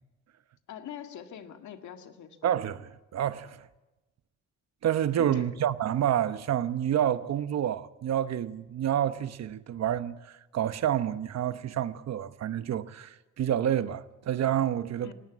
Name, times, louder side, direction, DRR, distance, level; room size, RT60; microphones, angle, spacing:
voice 1, 0.7-2.4 5.2-5.5 15.0-15.1, left 9 dB, 70° left, 2.0 m, -43 dB
voice 2, 2.4-3.7 4.8-15.1, right 10 dB, 60° right, 1.0 m, -29 dB
18.5 x 17.5 x 8.5 m
cardioid pair, 90°, 30 cm